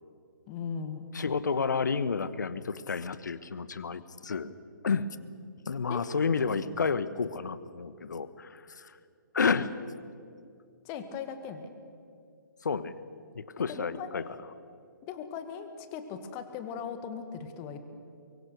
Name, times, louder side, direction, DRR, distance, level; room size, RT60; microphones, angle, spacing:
voice 1, 0.5-1.1 5.9-6.0 10.8-11.7 13.6-14.3 15.0-17.8, left 7 dB, 25° left, 9 dB, 1.7 m, -39 dB
voice 2, 1.1-4.5 4.8-5.1 5.6-9.0 9.3-9.7 12.6-13.0 13.3-14.2, left 5 dB, 60° left, 15 dB, 1.1 m, -30 dB
23.5 x 23.5 x 6.6 m, 2.4 s
figure-of-eight pair, 130°, 11 cm